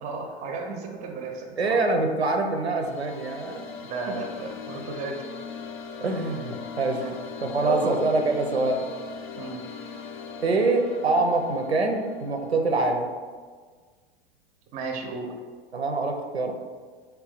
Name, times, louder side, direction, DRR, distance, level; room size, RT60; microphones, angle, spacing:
voice 1, 0.0-1.8 3.8-5.3 7.0-7.2 7.6-8.0 9.3-9.7 14.7-15.3, right 4 dB, 25° right, 3 dB, 0.5 m, -33 dB
voice 2, 1.6-3.6 6.0-7.0 7.4-8.9 10.4-13.1 15.7-16.5, right 3 dB, 90° right, 4 dB, 0.5 m, -25 dB
sound 1, 2.5-12.8, left 5 dB, 50° left, 0.4 m, -40 dB
4.3 x 2.2 x 3.8 m, 1.5 s
figure-of-eight pair, 90°, 31 cm